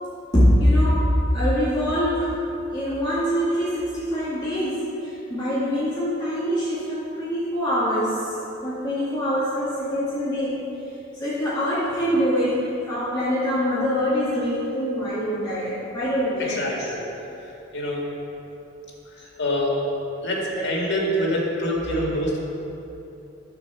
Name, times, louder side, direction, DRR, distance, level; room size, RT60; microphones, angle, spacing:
voice 1, 0.3-2.4 2.7-8.4 8.6-10.7 11.1-17.0 19.7-19.8 20.5-20.6 21.9-22.4, equal, 20° left, -13 dB, 2.1 m, -24 dB
voice 2, 16.6-17.0 17.7-18.0 19.4-19.7 20.2-22.4, left 1 dB, 60° left, -2 dB, 1.9 m, -25 dB
9.4 x 4.5 x 6.8 m, 2.9 s
head